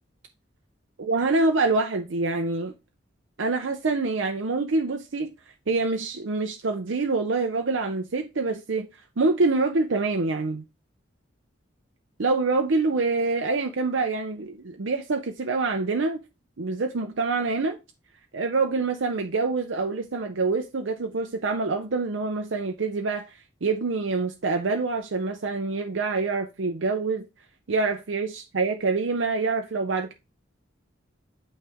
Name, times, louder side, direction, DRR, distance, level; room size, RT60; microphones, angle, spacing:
voice 1, 1.0-2.7 3.4-5.3 5.7-8.9 9.2-10.6 12.2-16.2 16.6-17.8 18.3-23.3 23.6-27.2 27.7-30.1, right 3 dB, 75° right, 0.6 m, -26 dB
8.5 x 3.2 x 3.5 m
head